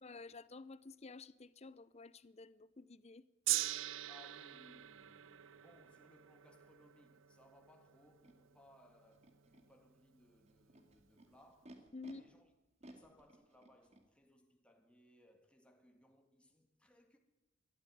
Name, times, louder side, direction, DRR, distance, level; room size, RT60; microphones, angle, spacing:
voice 1, 0.0-3.2 11.9-12.2, left 3 dB, 35° left, 0.7 m, -51 dB
Gong, 3.5-9.8 10.6-10.7, right 15 dB, 85° right, 0.6 m, -43 dB
voice 2, 4.1-12.5 12.8-17.2, left 1 dB, 5° left, 1.9 m, -66 dB
Animal, 8.2-8.3 9.1-9.6 10.5-12.1 12.8-14.0, right 1 dB, 35° right, 2.7 m, -58 dB
22.0 x 13.5 x 9.3 m
head